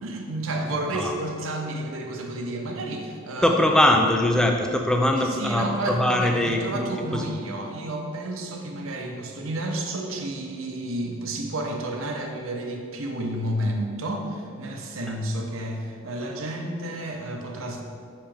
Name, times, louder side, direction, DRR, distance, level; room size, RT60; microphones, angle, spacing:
voice 1, 0.0-3.5 5.2-17.8, right 1 dB, 75° right, 2 dB, 0.7 m, -31 dB
voice 2, 3.4-7.3 15.1-15.2, left 1 dB, 5° left, 2 dB, 0.3 m, -22 dB
5.7 x 5.5 x 3.4 m, 2.3 s
head